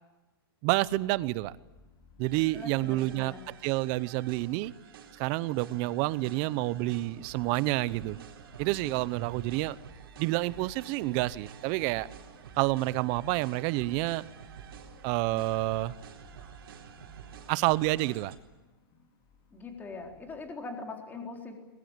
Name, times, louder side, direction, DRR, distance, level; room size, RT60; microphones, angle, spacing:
voice 1, 0.6-1.5 2.2-3.3 3.6-4.7 5.1-8.2 8.6-9.8 10.2-12.1 12.6-14.2 15.0-15.9 17.5-18.3, right 19 dB, 35° right, 0.8 m, -28 dB
sound 1, 0.8-20.5, left 4 dB, 35° left, 4.5 m, -60 dB
sound 2, 2.2-18.4, right 7 dB, 70° right, 4.3 m, -50 dB
voice 2, 2.5-3.4 19.5-21.6, left 3 dB, 15° left, 4.0 m, -41 dB
22.0 x 21.5 x 9.0 m
hypercardioid pair, 140°, 13 cm